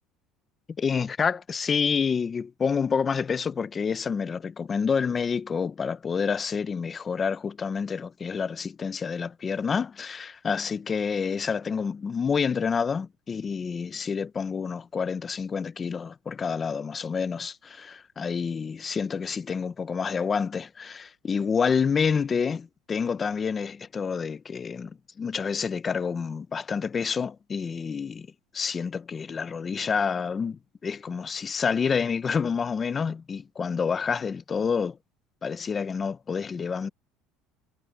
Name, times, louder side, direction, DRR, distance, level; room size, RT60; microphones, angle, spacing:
voice 1, 0.8-28.3 28.5-35.0 35.4-36.9, left 6 dB, 20° left, 0.5 m, -28 dB
cardioid pair, 175°, 0 cm